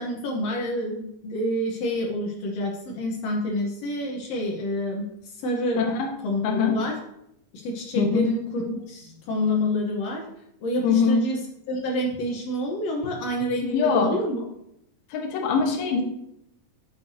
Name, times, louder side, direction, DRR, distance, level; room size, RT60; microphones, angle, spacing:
voice 1, 0.0-5.8 6.2-7.0 7.6-10.2 10.6-11.4 11.7-14.4, left 1 dB, 70° left, -1 dB, 1.5 m, -28 dB
voice 2, 5.8-6.1 6.4-6.8 8.0-8.3 10.8-11.2 13.6-14.1 15.1-16.0, left 5 dB, 90° left, 3 dB, 3.0 m, -22 dB
12.0 x 6.5 x 2.7 m, 0.78 s
omnidirectional pair, 4.2 m